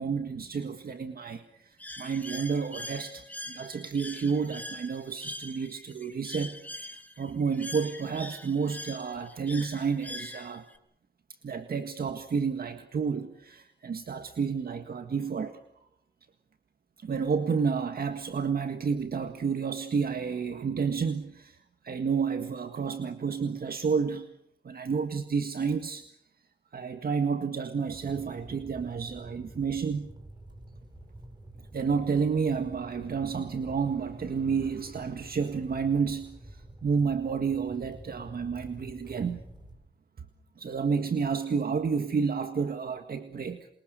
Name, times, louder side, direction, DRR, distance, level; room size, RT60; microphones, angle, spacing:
voice 1, 0.0-10.7 11.4-15.6 17.0-21.6 21.8-24.3 24.6-26.1 26.7-30.1 31.7-39.5 40.6-43.7, right 5 dB, 60° right, 7 dB, 1.8 m, -30 dB
Bird, 1.8-10.8, left 1 dB, 10° left, 3.7 m, -43 dB
sound 1, 27.9-39.8, right 1 dB, 25° right, 7.5 m, -48 dB
28.0 x 24.0 x 6.7 m, 0.73 s
cardioid pair, 70°, 17 cm